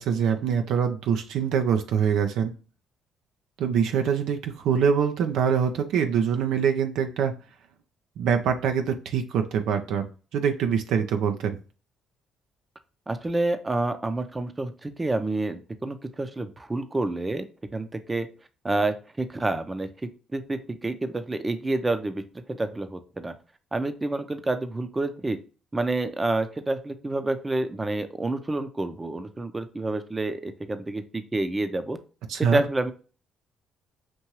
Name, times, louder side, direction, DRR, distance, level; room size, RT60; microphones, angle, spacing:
voice 1, 0.0-2.5 3.6-7.3 8.2-10.0 10.3-11.6 32.3-32.6, right 7 dB, 70° right, 6 dB, 0.5 m, -24 dB
voice 2, 13.1-17.4 17.7-18.3 18.6-22.2 22.5-23.3 23.7-25.4 25.7-32.0 32.4-32.9, right 2 dB, 20° right, 9 dB, 0.7 m, -28 dB
6.0 x 2.7 x 3.0 m, 0.36 s
hypercardioid pair, 55°, 0 cm